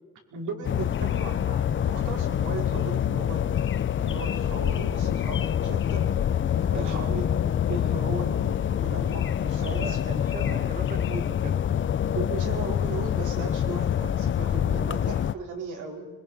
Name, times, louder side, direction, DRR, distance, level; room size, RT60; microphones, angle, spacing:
voice 1, 0.3-3.5 4.0-6.1 6.7-10.0 12.1-16.1, right 4 dB, 75° right, 0 dB, 5.0 m, -37 dB
sound 1, 0.6-15.3, left 9 dB, 40° left, 0.6 m, -26 dB
voice 2, 9.6-11.6, right 4 dB, 25° right, 12 dB, 0.8 m, -39 dB
26.0 x 22.0 x 5.8 m, 1.3 s
cardioid pair, 90°, 30 cm